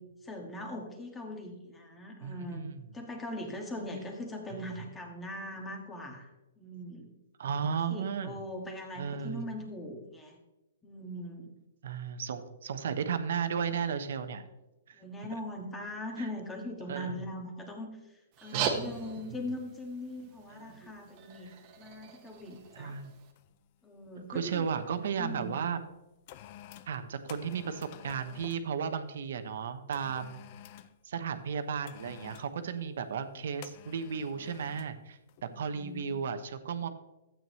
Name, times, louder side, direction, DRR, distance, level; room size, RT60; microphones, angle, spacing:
voice 1, 0.2-2.6 2.9-7.1 7.7-10.4 10.8-11.6 14.9-23.0 23.8-24.7 25.2-25.5 35.5-36.1, left 1 dB, 10° left, 2 dB, 1.7 m, -41 dB
voice 2, 2.2-2.8 7.4-8.4 9.0-9.5 11.8-14.5 14.9-15.0 16.2-16.3 16.9-17.2 18.5-18.9 20.6-20.8 22.7-23.1 24.3-25.8 26.9-30.4 31.0-36.9, right 6 dB, 65° right, 10 dB, 1.0 m, -34 dB
sound 1, 18.3-23.3, right 6 dB, 30° right, 1.3 m, -39 dB
sound 2, 22.5-22.7 23.4-23.6 23.9-25.1 25.8-28.7 29.9-31.0 31.9-32.6 33.6-35.0 35.3-35.5, left 11 dB, 40° left, 0.5 m, -51 dB
12.5 x 8.8 x 3.2 m, 1.0 s
hypercardioid pair, 155°, 0 cm